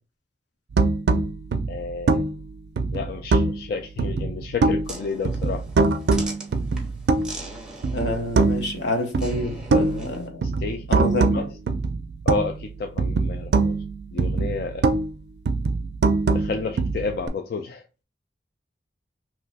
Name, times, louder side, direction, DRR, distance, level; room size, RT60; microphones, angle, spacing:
sound 1, 0.7-3.7 4.0-5.0 5.2-7.5 7.8-8.8 9.1-12.7 13.0-15.2 15.5-17.3, right 3 dB, 70° right, 0.4 m, -23 dB
voice 1, 1.7-2.2 2.9-5.6 10.4-10.9 11.3-11.4 12.3-13.7 14.1-14.9 16.3-17.9, left 4 dB, 60° left, 0.3 m, -31 dB
sound 2, 4.9-10.3, right 1 dB, 5° right, 0.7 m, -40 dB
voice 2, 7.9-10.5 10.9-11.4, left 1 dB, 85° left, 0.8 m, -27 dB
2.9 x 2.0 x 4.0 m
head